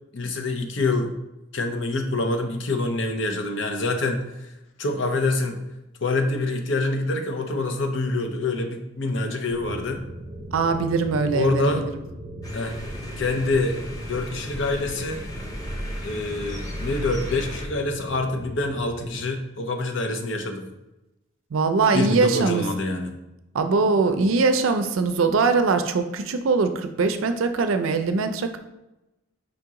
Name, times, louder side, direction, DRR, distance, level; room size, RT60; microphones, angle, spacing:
voice 1, 0.1-1.1 1.5-4.2 4.8-5.6 6.0-10.0 11.3-11.8 12.5-12.8 13.2-13.8 14.1-15.2 16.0-20.7 21.9-23.1, left 2 dB, 65° left, 5 dB, 0.6 m, -26 dB
sound 1, 9.5-19.2, equal, 40° right, 0.6 m, -38 dB
voice 2, 10.5-11.7 21.5-22.6 23.5-28.6, right 4 dB, 85° right, 8 dB, 0.5 m, -22 dB
sound 2, 12.4-17.7, equal, 20° left, 0.6 m, -35 dB
5.1 x 2.9 x 3.6 m, 0.96 s
head